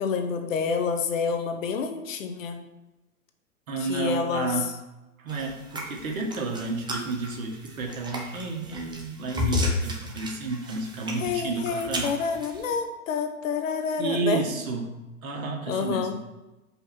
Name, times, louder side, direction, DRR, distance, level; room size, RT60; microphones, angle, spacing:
voice 1, 0.0-2.6 3.8-4.5 11.2-14.4 15.7-16.2, left 5 dB, 65° left, 6 dB, 1.2 m, -28 dB
voice 2, 3.7-4.7 5.2-12.1 14.0-14.9 15.2-16.2, right 3 dB, 70° right, 1 dB, 1.9 m, -31 dB
sound 1, 5.3-12.7, left 2 dB, 10° right, 1.0 m, -33 dB
5.4 x 4.5 x 6.0 m, 1.0 s
hypercardioid pair, 125°, 43 cm